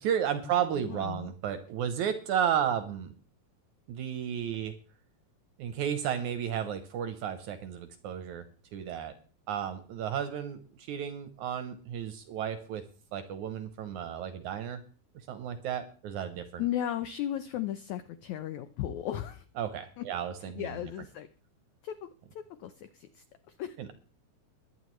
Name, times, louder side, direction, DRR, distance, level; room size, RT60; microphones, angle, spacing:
voice 1, 0.0-3.1 3.9-4.7 5.6-8.4 8.7-9.1 9.5-10.6 10.9-12.8 13.1-14.8 15.3-16.6 19.6-20.7 23.8-23.9, right 9 dB, 70° right, 9 dB, 1.9 m, -33 dB
voice 2, 0.8-1.3 16.6-19.4 20.0-20.1 20.4-21.3 21.8-22.1 22.3-23.9, left 11 dB, 90° left, 11 dB, 1.6 m, -36 dB
22.0 x 9.3 x 3.1 m, 0.39 s
omnidirectional pair, 4.2 m